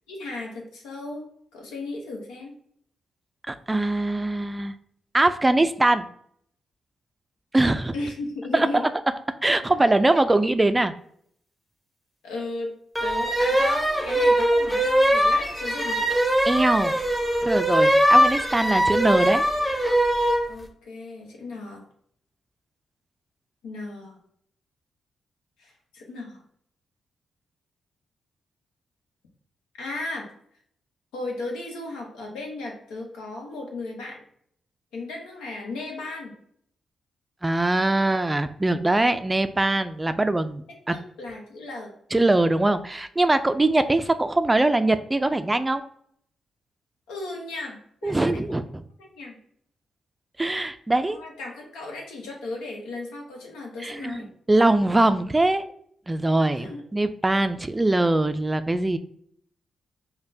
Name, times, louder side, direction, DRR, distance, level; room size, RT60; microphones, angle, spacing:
voice 1, 0.1-2.5 7.9-8.8 12.2-12.7 13.0-16.1 20.5-21.9 23.6-24.2 25.6-26.4 29.8-30.3 31.1-34.2 34.9-36.4 40.9-41.9 47.1-48.6 49.0-49.4 51.1-54.3 56.5-56.8, left 2 dB, 90° left, 0 dB, 0.8 m, -35 dB
voice 2, 3.5-4.7 5.1-6.0 7.5-7.9 8.5-8.7 9.4-10.9 16.5-16.9 17.4-19.4 37.4-41.0 42.1-45.8 48.0-48.8 50.4-51.2 53.8-55.7 56.1-59.0, right 2 dB, 20° right, 11 dB, 0.3 m, -22 dB
sound 1, 13.0-20.5, equal, 5° left, 0.8 m, -21 dB
5.2 x 2.2 x 2.6 m, 0.65 s
supercardioid pair, 50°, 0 cm